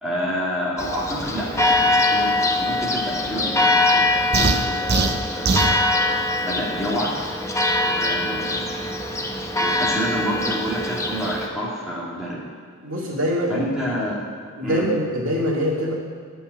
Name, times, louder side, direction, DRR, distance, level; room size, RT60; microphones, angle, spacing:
voice 1, 0.0-4.0 4.3-5.0 5.3-5.6 6.4-7.1 7.8-8.7 9.5-12.4 13.5-14.2 14.6-14.9, equal, ahead, -8 dB, 2.1 m, -28 dB
Church bell, 0.8-11.5, left 2 dB, 15° left, 0.7 m, -23 dB
sound 1, 4.3-5.8, right 4 dB, 45° right, 0.6 m, -21 dB
voice 2, 12.8-13.5 14.6-15.9, equal, 65° right, -4 dB, 2.3 m, -23 dB
10.5 x 5.5 x 7.6 m, 2.1 s
head